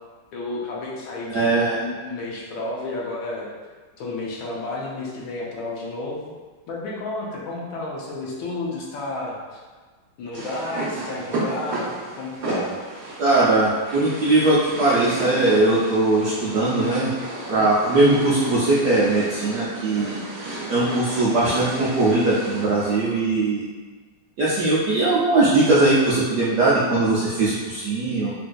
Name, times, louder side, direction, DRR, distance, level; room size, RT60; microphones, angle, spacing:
voice 1, 0.3-3.5 4.0-6.2 6.7-9.6 10.2-12.8, left 2 dB, 75° left, -3 dB, 1.3 m, -31 dB
voice 2, 1.3-1.8 13.2-17.1 17.5-20.2 20.7-23.7 24.4-28.3, right 2 dB, 80° right, -8 dB, 0.9 m, -20 dB
sound 1, 10.3-23.1, right 2 dB, 60° right, 1.0 m, -33 dB
4.1 x 2.5 x 2.2 m, 1.4 s
omnidirectional pair, 2.3 m